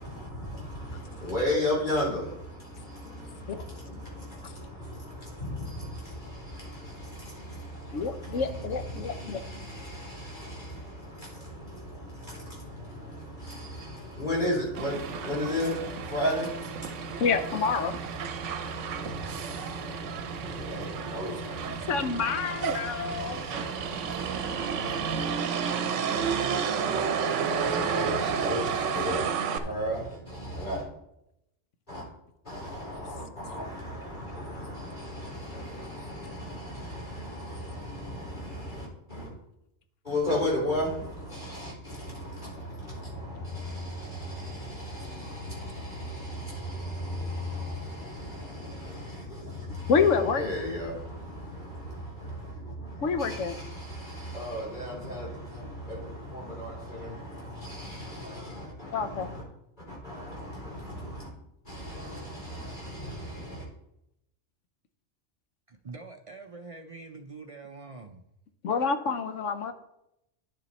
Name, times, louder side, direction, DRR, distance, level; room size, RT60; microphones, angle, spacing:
voice 1, 0.0-25.4 26.1-26.4 26.9-27.1 27.4-29.3 29.6-30.9 31.9-32.1 32.4-39.3 40.0-59.4 59.8-61.3 61.6-63.7, left 1 dB, 35° left, 3.9 m, -36 dB
voice 2, 7.9-9.4 17.2-17.9 21.9-23.5 49.9-50.4 53.0-53.6 58.9-59.3 68.6-69.7, left 5 dB, 80° left, 1.2 m, -27 dB
Motor vehicle (road), 14.7-29.6, right 6 dB, 75° right, 1.0 m, -31 dB
voice 3, 65.7-68.2, right 3 dB, 50° right, 0.4 m, -44 dB
10.5 x 6.8 x 4.2 m
omnidirectional pair, 1.3 m